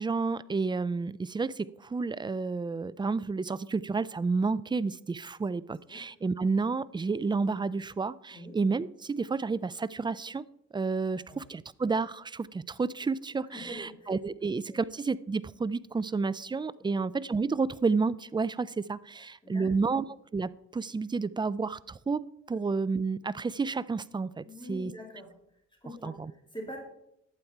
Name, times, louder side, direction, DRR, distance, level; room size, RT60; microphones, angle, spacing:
voice 1, 0.0-10.4 10.7-20.0 20.3-24.9 26.0-26.3, right 4 dB, 15° right, 18 dB, 0.4 m, -30 dB
voice 2, 13.5-14.1 14.7-14.8 16.8-17.0 19.2-19.7 24.4-25.3 25.8-26.8, left 1 dB, 15° left, 1 dB, 3.1 m, -44 dB
11.5 x 8.7 x 4.5 m, 0.76 s
cardioid pair, 90°, 30 cm